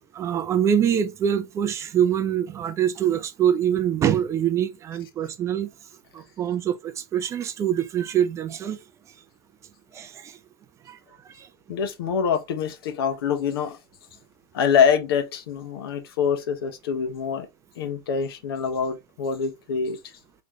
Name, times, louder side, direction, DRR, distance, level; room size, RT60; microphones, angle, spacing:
voice 1, 0.1-5.7 6.1-8.8 9.9-10.4 10.9-11.0 11.4-11.5, right 9 dB, 25° right, 0.5 m, -24 dB
voice 2, 11.7-13.8 14.5-17.5 17.8-20.0, left 7 dB, 70° left, 1.1 m, -25 dB
3.9 x 3.1 x 3.1 m
hypercardioid pair, 130°, 13 cm